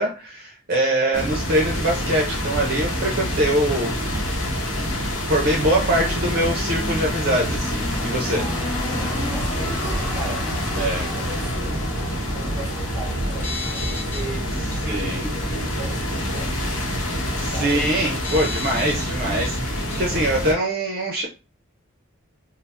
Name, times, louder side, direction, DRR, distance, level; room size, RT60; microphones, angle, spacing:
voice 1, 0.0-4.5 5.2-8.4 10.8-11.1 14.8-15.2 17.4-21.3, right 1 dB, 45° right, 0.5 m, -23 dB
sound 1, 1.1-20.5, equal, 75° left, 0.8 m, -26 dB
sound 2, 4.7-15.0 15.6-15.7, left 1 dB, 25° left, 1.0 m, -35 dB
voice 2, 8.3-11.8 12.3-16.5 17.3-17.8 19.9-20.3, right 1 dB, 15° right, 1.1 m, -38 dB
sound 3, 13.3-14.3 14.7-14.8 15.9-16.0 18.2-19.6 19.9-20.0, left 4 dB, 10° left, 0.4 m, -34 dB
2.7 x 2.0 x 3.3 m
head